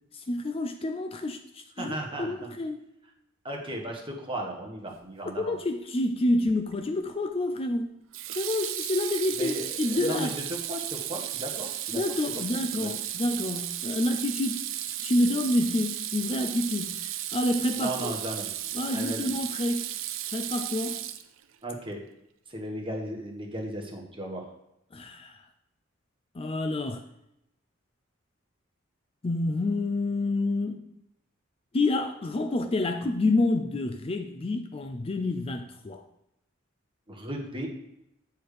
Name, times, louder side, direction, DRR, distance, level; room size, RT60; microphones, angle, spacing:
voice 1, 0.1-2.8 5.4-8.0 8.3-10.3 11.9-14.6 15.0-18.1 18.7-19.9 20.3-21.0 24.9-25.4 26.3-27.0 29.2-30.8 31.7-36.0, left 2 dB, 30° left, 7 dB, 0.4 m, -28 dB
voice 2, 1.8-2.5 3.4-5.6 9.4-12.0 12.5-12.9 17.7-18.5 18.9-19.3 21.6-22.0 22.5-24.5 37.1-37.7, right 1 dB, 25° right, 1 dB, 1.3 m, -35 dB
Water tap faucet / Sink (filling or washing), 6.5-6.8 8.1-21.6, right 12 dB, 70° right, 0.5 m, -34 dB
8.3 x 4.3 x 4.9 m, 0.83 s
head